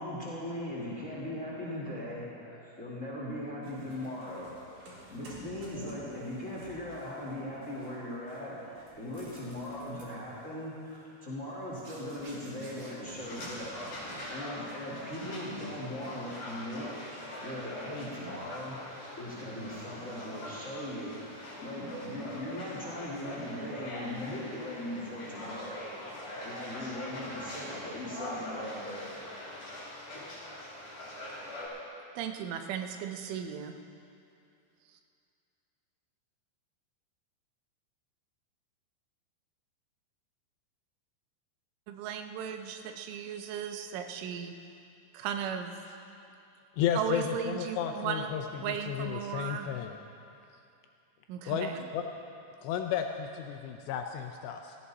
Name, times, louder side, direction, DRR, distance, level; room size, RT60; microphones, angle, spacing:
voice 1, 0.0-4.5 4.8-29.1, left 1 dB, 30° left, -5 dB, 1.3 m, -39 dB
sound 1, 3.6-14.3 14.6-15.0 15.3-15.5 16.0-16.9 17.3-17.7, right 2 dB, 45° right, 2.8 m, -53 dB
sound 2, 13.2-31.7, left 1 dB, 55° left, 4.8 m, -43 dB
voice 2, 32.2-33.8 41.9-44.5 45.1-45.7 46.9-48.3 48.6-49.7 51.3-51.8, right 8 dB, 90° right, 6 dB, 3.3 m, -36 dB
voice 3, 46.8-49.9 51.5-52.1 52.6-54.8, left 8 dB, 80° left, 5 dB, 2.6 m, -33 dB
17.0 x 15.5 x 4.2 m, 2.6 s
omnidirectional pair, 5.4 m